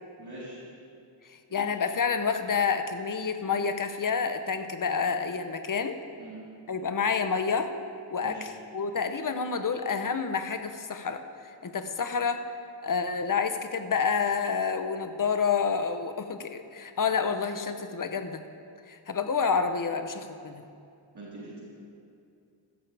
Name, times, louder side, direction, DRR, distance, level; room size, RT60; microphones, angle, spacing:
voice 1, 0.2-0.6 1.5-1.6 6.2-6.4 8.2-8.5 21.1-21.6, right 2 dB, 55° right, -8 dB, 3.7 m, -43 dB
voice 2, 1.5-6.0 6.7-7.7 8.1-11.2 11.6-12.4 12.8-18.4 18.9-20.6, left 5 dB, 45° left, 8 dB, 0.8 m, -28 dB
15.5 x 13.0 x 3.4 m, 2.5 s
wide cardioid pair, 85°, 46 cm